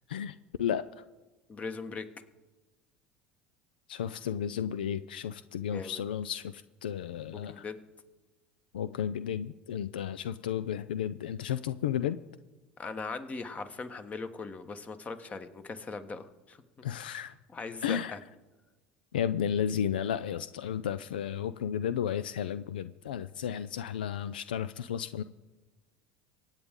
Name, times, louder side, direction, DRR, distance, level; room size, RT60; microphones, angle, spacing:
voice 1, 0.1-1.0 3.9-7.6 8.7-12.2 16.8-17.3 17.8-18.2 19.1-25.2, left 9 dB, 85° left, 14 dB, 0.4 m, -33 dB
voice 2, 1.5-2.1 5.7-6.0 7.3-7.8 12.8-16.8 17.5-18.2, left 4 dB, 30° left, 9 dB, 1.4 m, -40 dB
24.0 x 8.9 x 3.7 m, 1.2 s
hypercardioid pair, 75°, 5 cm